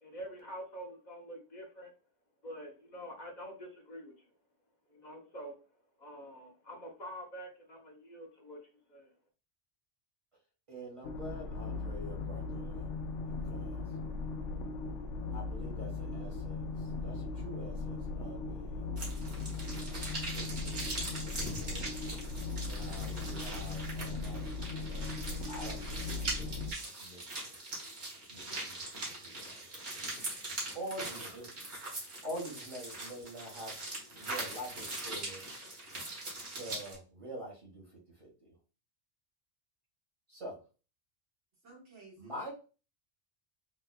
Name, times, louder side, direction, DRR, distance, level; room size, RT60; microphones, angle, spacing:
voice 1, 0.0-1.9 2.4-4.1 4.9-5.6 6.0-8.6 8.9-9.1, equal, 40° left, 0 dB, 1.0 m, -46 dB
voice 2, 10.7-12.9 13.2-13.9 15.3-18.9 19.8-21.0 21.5-22.2 22.6-25.1 25.5-27.5 28.3-29.8 30.7-31.4 32.0-35.4 36.5-37.8 38.2-38.5 40.3-40.6 42.2-42.5, right 1 dB, 25° right, -3 dB, 1.6 m, -46 dB
sound 1, 11.0-26.7, left 3 dB, 85° left, 0.9 m, -38 dB
sound 2, 19.0-37.0, right 2 dB, 55° right, 1.5 m, -41 dB
voice 3, 31.0-31.6 41.6-42.5, right 4 dB, 80° right, -3 dB, 1.7 m, -54 dB
3.8 x 2.9 x 2.2 m, 0.34 s
omnidirectional pair, 1.2 m